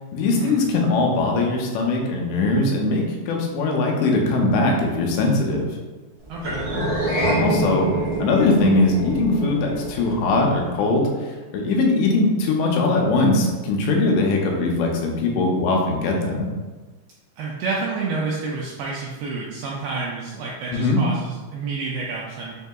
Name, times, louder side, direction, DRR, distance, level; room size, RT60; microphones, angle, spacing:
voice 1, 0.1-5.7 6.8-6.9 7.4-7.9 8.2-16.5 20.7-21.0, left 2 dB, 85° left, 0 dB, 2.9 m, -21 dB
voice 2, 6.3-6.8 17.4-22.6, right 4 dB, 85° right, -4 dB, 2.1 m, -29 dB
sound 1, 6.4-11.0, right 1 dB, 60° right, 1.3 m, -26 dB
6.6 x 2.7 x 2.2 m, 1.2 s
omnidirectional pair, 4.9 m